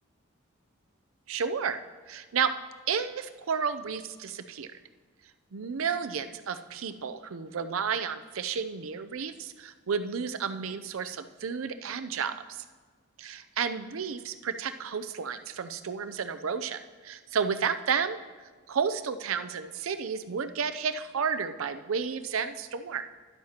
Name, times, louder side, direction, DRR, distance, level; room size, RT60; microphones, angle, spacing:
voice 1, 1.3-1.8 2.1-2.5 2.9-4.7 5.5-12.6 13.2-23.1, right 6 dB, 90° right, 10 dB, 0.5 m, -32 dB
12.5 x 11.0 x 2.9 m, 1.5 s
head